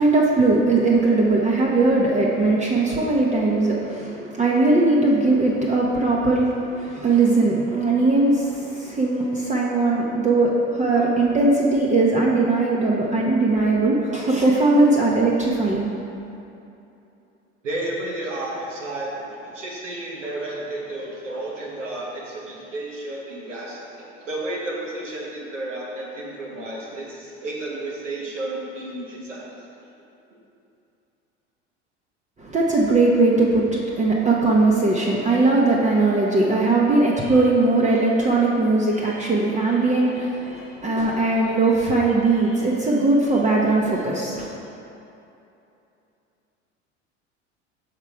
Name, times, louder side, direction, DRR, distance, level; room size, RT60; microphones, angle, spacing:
voice 1, 0.0-15.9 32.4-44.5, right 2 dB, 20° right, -3 dB, 0.7 m, -19 dB
voice 2, 17.6-29.6, right 1 dB, 90° right, -3 dB, 1.2 m, -32 dB
5.7 x 3.7 x 4.5 m, 2.8 s
hypercardioid pair, 80°, 36 cm